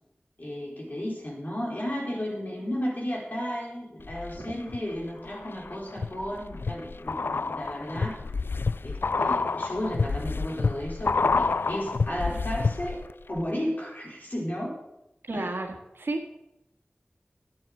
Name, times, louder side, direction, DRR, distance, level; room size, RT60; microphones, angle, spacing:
voice 1, 0.4-8.2 8.8-13.0 13.3-14.8 15.3-15.5, equal, 50° left, -2 dB, 4.5 m, -33 dB
sound 1, 4.0-4.8 5.2-13.1 13.4-13.5, left 4 dB, 80° left, 0.3 m, -28 dB
voice 2, 15.3-16.3, right 2 dB, 90° right, 3 dB, 1.8 m, -32 dB
11.0 x 8.7 x 8.0 m, 0.88 s
wide cardioid pair, 50°, 4 cm